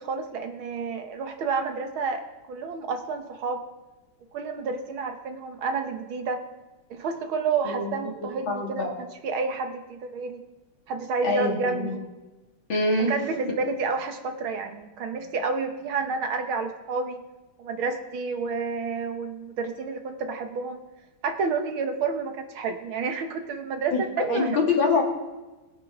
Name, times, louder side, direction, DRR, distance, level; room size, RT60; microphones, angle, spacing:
voice 1, 0.0-2.2 2.5-3.6 4.3-6.4 6.9-10.4 10.9-12.0 13.1-17.2 17.6-20.8 21.2-24.5, right 4 dB, 75° right, 6 dB, 2.0 m, -30 dB
voice 2, 8.5-8.9 11.2-11.9 12.7-13.2 23.9-25.0, left 3 dB, 70° left, 0 dB, 3.1 m, -25 dB
21.0 x 9.7 x 3.7 m, 1.1 s
omnidirectional pair, 2.3 m